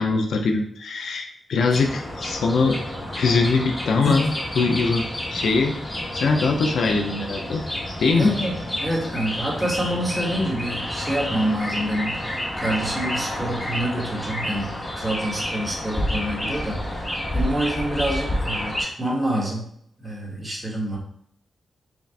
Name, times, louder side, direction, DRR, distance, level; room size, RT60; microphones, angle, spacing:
voice 1, 0.0-2.8 3.1-5.0 5.3-5.8 6.1-7.6 8.0-8.3, left 4 dB, 80° left, 3 dB, 0.6 m, -22 dB
sound 1, 1.7-18.8, left 1 dB, 15° left, 1.3 m, -29 dB
voice 2, 8.1-8.5 8.8-19.7 20.0-21.0, equal, 15° right, -4 dB, 1.5 m, -27 dB
4.9 x 2.5 x 3.4 m, 0.70 s
cardioid pair, 85°, 0 cm